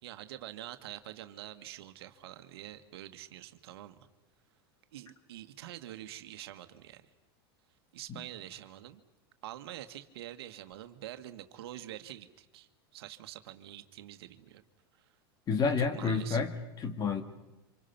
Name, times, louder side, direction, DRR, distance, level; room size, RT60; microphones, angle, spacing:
voice 1, 0.0-4.1 4.9-7.1 7.9-9.0 9.4-14.6 15.0-15.1 15.8-16.4, right 13 dB, 75° right, 8 dB, 1.6 m, -46 dB
voice 2, 15.5-17.2, left 5 dB, 30° left, 9 dB, 2.0 m, -30 dB
29.0 x 26.0 x 5.9 m, 1.0 s
supercardioid pair, 125°, 13 cm